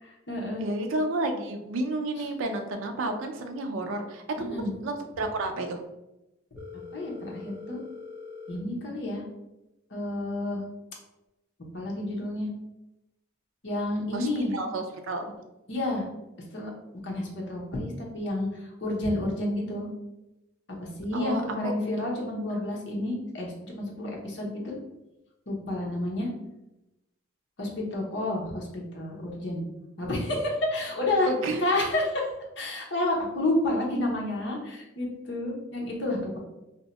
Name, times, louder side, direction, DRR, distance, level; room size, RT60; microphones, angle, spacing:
voice 1, 0.0-0.6 4.4-4.7 6.9-7.8 8.5-9.2 9.9-10.6 11.7-12.5 13.6-14.5 15.7-16.1 16.5-16.7 17.0-19.9 20.8-24.8 25.5-26.3 27.6-29.6 30.0-31.3 31.6-36.4, left 1 dB, 55° left, -2 dB, 0.8 m, -30 dB
voice 2, 0.6-4.6 4.8-5.8 14.1-15.2 21.1-21.7 22.5-22.6 31.3-31.6, right 2 dB, 75° right, 4 dB, 0.4 m, -31 dB
Telephone, 6.6-8.6, left 4 dB, 10° right, 0.5 m, -42 dB
2.7 x 2.2 x 4.0 m, 0.94 s
head